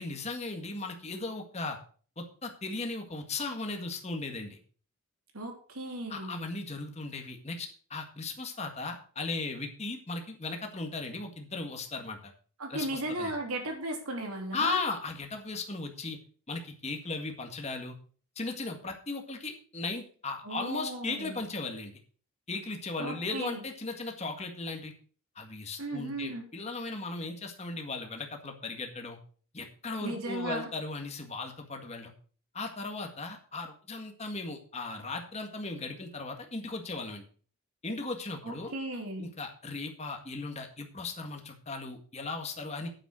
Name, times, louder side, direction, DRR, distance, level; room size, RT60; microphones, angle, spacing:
voice 1, 0.0-1.8 2.2-4.6 6.1-12.3 12.7-13.3 14.5-16.2 16.5-18.0 18.4-21.9 22.5-24.9 25.4-29.2 29.5-32.1 32.5-37.2 37.8-38.7 39.2-42.9, left 3 dB, 30° left, 4 dB, 1.8 m, -37 dB
voice 2, 5.3-6.5 12.6-14.8 20.4-21.4 23.0-23.6 25.8-26.5 30.0-30.7 38.4-39.3, right 1 dB, 85° right, 2 dB, 3.4 m, -36 dB
9.2 x 7.6 x 6.3 m, 0.42 s
head